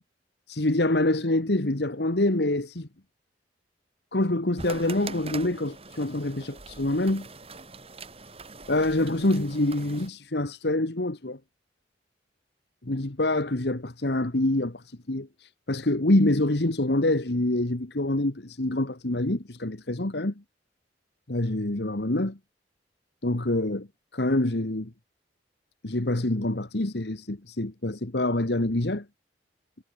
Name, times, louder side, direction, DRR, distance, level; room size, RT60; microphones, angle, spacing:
voice 1, 0.5-2.9 4.1-7.3 8.7-11.4 12.8-20.3 21.3-22.4 23.2-23.9 24.1-24.9 25.8-29.0, left 1 dB, 60° left, 1.6 m, -26 dB
sound 1, 4.6-10.1, right 3 dB, 30° right, 4.7 m, -43 dB
head